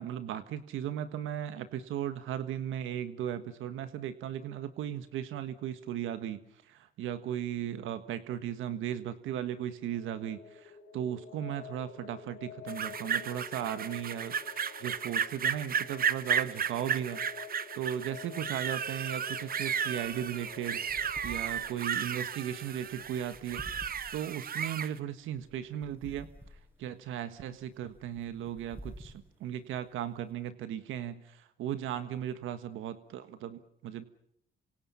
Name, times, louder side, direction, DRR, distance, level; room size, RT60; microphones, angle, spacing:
voice 1, 0.0-17.2 17.7-23.9 24.1-26.3 26.8-34.0, right 10 dB, 85° right, 10 dB, 1.5 m, -37 dB
sound 1, 9.8-24.1, left 7 dB, 65° left, 2.8 m, -50 dB
sound 2, 12.7-24.9, right 7 dB, 50° right, 1.0 m, -34 dB
sound 3, 19.8-30.3, right 1 dB, 10° right, 6.9 m, -51 dB
28.5 x 25.5 x 5.7 m, 0.71 s
cardioid pair, 90°, 20 cm